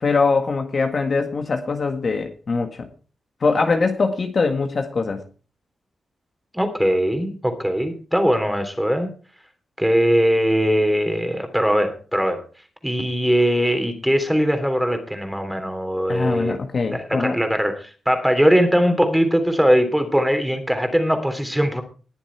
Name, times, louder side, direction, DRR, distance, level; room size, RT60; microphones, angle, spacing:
voice 1, 0.0-2.9 3.4-5.2 16.1-17.4, left 4 dB, 45° left, 5 dB, 1.8 m, -22 dB
voice 2, 6.5-9.1 9.8-12.4 12.8-16.6 16.9-21.8, equal, 5° right, 7 dB, 3.2 m, -20 dB
20.0 x 7.2 x 4.6 m, 0.38 s
wide cardioid pair, 110°, 0 cm